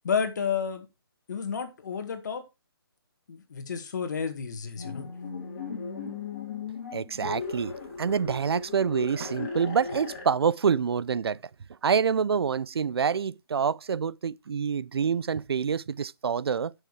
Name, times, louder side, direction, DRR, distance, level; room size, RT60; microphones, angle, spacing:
voice 1, 0.0-0.9 1.3-2.4 3.3-5.0, left 6 dB, 45° left, 2.1 m, -31 dB
sound 1, 4.8-10.3, left 5 dB, 30° left, 3.1 m, -37 dB
voice 2, 6.9-11.4 11.8-16.7, right 6 dB, 80° right, 0.5 m, -27 dB
10.5 x 6.5 x 4.7 m
hypercardioid pair, 175°, 13 cm